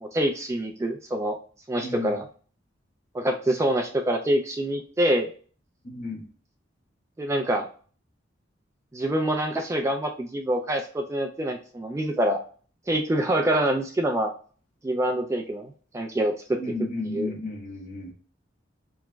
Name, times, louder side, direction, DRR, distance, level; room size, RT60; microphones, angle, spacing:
voice 1, 0.0-1.4 1.7-2.3 3.1-5.3 7.2-7.7 8.9-12.4 12.9-14.3 14.8-16.6 17.0-17.3, right 1 dB, 15° right, 3 dB, 0.3 m, -26 dB
voice 2, 1.8-2.1 5.8-6.2 16.5-18.1, left 3 dB, 45° left, -2 dB, 1.3 m, -33 dB
4.8 x 3.0 x 2.2 m, 0.42 s
head